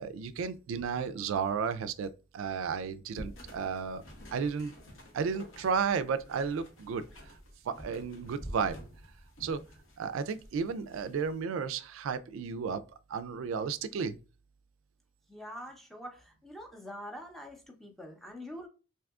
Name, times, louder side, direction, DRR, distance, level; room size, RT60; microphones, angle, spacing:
voice 1, 0.0-4.0 4.3-4.7 5.1-7.4 7.6-8.8 9.4-9.6 10.0-12.8 13.1-14.2, right 6 dB, 75° right, 0.3 m, -33 dB
sound 1, 3.1-11.4, equal, 75° left, 1.0 m, -49 dB
voice 2, 15.3-18.7, equal, ahead, 0.5 m, -45 dB
3.5 x 2.7 x 2.3 m
head